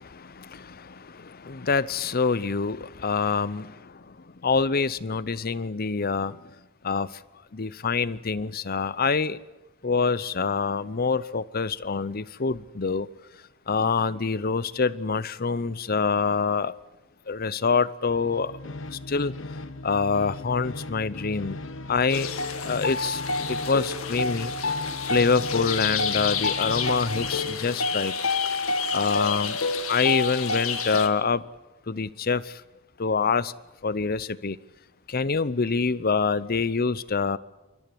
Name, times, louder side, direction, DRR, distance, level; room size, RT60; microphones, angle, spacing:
voice 1, 0.2-3.8 4.4-6.4 6.8-7.1 7.5-9.4 9.8-13.1 13.7-16.7 17.3-18.5 18.9-19.3 19.8-21.6 21.9-22.3 22.6-23.2 23.5-24.5 25.1-28.1 28.9-29.6 29.9-31.4 31.9-32.6 33.0-33.5 33.8-34.6 35.1-37.4, left 4 dB, 45° left, 0.8 m, -26 dB
sound 1, 18.1-27.7, left 2 dB, 65° left, 1.2 m, -39 dB
sound 2, 22.1-31.1, left 4 dB, 85° left, 1.9 m, -28 dB
28.5 x 14.0 x 9.9 m
head